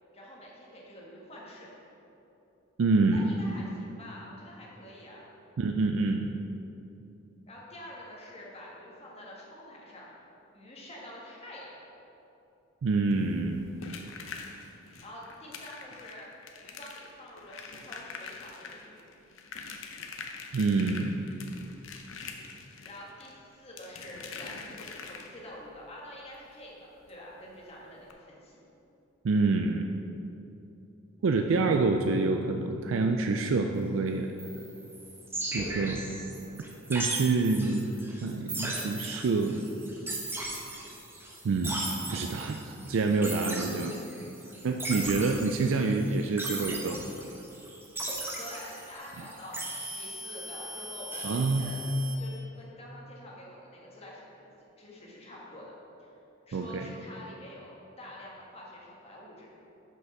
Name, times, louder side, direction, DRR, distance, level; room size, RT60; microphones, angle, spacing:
voice 1, 0.1-1.7 3.1-5.3 7.5-10.1 10.5-11.7 15.0-16.3 16.6-19.1 22.8-28.6 48.4-51.8 52.2-54.3 54.8-55.7 56.0-56.1 56.5-59.5, left 1 dB, 30° left, -4 dB, 1.5 m, -47 dB
voice 2, 2.8-3.2 5.6-6.3 12.8-13.7 20.5-21.2 29.2-30.0 31.2-34.4 35.5-36.0 36.9-37.9 38.2-39.7 41.4-44.0 44.6-47.1 51.2-51.7 56.5-56.8, right 3 dB, 70° right, 4 dB, 0.4 m, -27 dB
sound 1, 13.1-25.6 27.1-27.2 27.5-27.6 28.0-28.1, left 5 dB, 70° left, 0.7 m, -44 dB
sound 2, 34.4-52.2, right 1 dB, 10° right, 0.9 m, -38 dB
6.2 x 5.6 x 5.9 m, 2.9 s
head